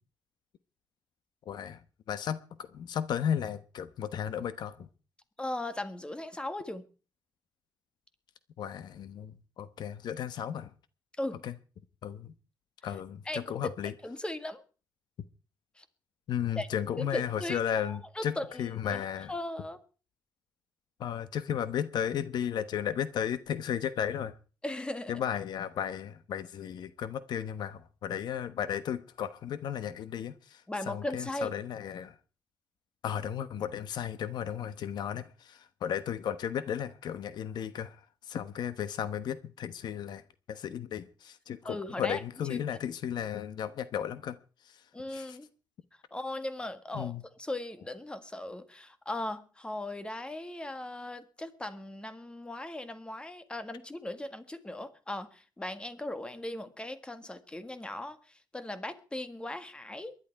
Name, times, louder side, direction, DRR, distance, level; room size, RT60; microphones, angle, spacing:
voice 1, 1.5-1.8 2.1-4.9 8.6-10.7 11.4-11.5 12.0-12.3 12.8-13.9 16.3-19.3 21.0-24.3 25.1-32.1 33.0-38.0 38.3-40.2 40.5-44.4 44.7-44.8 45.1-45.4 46.9-47.2, left 9 dB, 75° left, 1.0 m, -34 dB
voice 2, 5.4-6.8 11.2-11.4 13.3-13.7 14.0-14.6 15.8-15.9 16.5-16.7 17.0-17.6 17.8-19.0 19.3-19.8 24.6-25.1 30.7-31.5 41.6-42.2 42.5-42.6 44.9-45.5 46.1-47.1 47.4-60.2, left 1 dB, 15° left, 1.7 m, -38 dB
22.5 x 11.5 x 4.7 m
cardioid pair, 110°, 7 cm